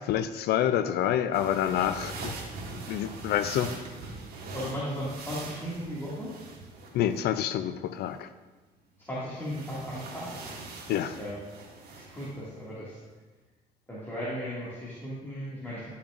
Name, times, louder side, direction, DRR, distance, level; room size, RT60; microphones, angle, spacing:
voice 1, 0.0-2.3 2.9-3.7 6.9-8.3 10.9-11.2, left 10 dB, 75° left, 11 dB, 0.4 m, -27 dB
sound 1, 1.3-7.3 9.4-12.4, right 3 dB, 65° right, 1.8 m, -42 dB
voice 2, 4.5-6.3 9.0-10.3 11.2-11.4 11.9-13.0 13.9-15.9, equal, 15° left, -9 dB, 2.1 m, -36 dB
11.5 x 7.0 x 2.5 m, 1.2 s
cardioid pair, 110°, 17 cm